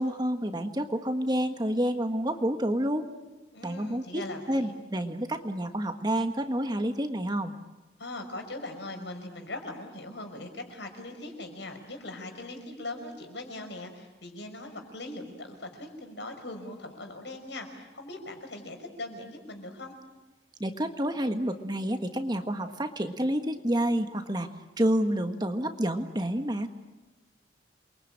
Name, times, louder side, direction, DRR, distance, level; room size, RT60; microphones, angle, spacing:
voice 1, 0.0-3.1 3.6-7.6 20.6-24.5 24.8-26.7, right 1 dB, 20° right, 7 dB, 1.5 m, -29 dB
voice 2, 3.5-4.8 8.0-19.9, left 2 dB, 70° left, 5 dB, 5.6 m, -40 dB
28.5 x 23.0 x 8.9 m, 1.1 s
head